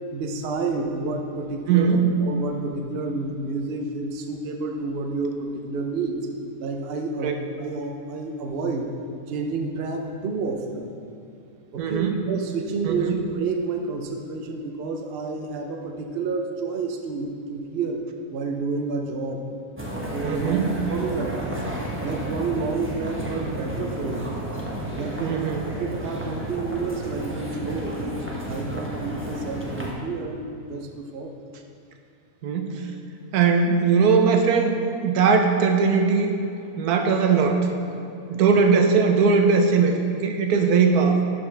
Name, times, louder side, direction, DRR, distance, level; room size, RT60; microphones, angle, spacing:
voice 1, 0.1-6.2 6.6-8.9 9.3-10.9 11.7-18.0 18.3-19.4 20.1-20.6 20.9-21.6 22.0-24.3 24.9-25.3 25.8-31.3, right 3 dB, 50° right, 3 dB, 0.8 m, -30 dB
voice 2, 1.7-2.1 7.2-7.3 11.8-12.2 12.8-13.2 20.2-20.7 25.2-25.6 32.4-32.9 33.3-36.4 36.8-37.6 38.3-41.2, right 5 dB, 85° right, 4 dB, 1.2 m, -20 dB
sound 1, 19.8-29.9, right 1 dB, 10° right, 0.8 m, -32 dB
12.0 x 5.5 x 3.3 m, 2.7 s
omnidirectional pair, 1.6 m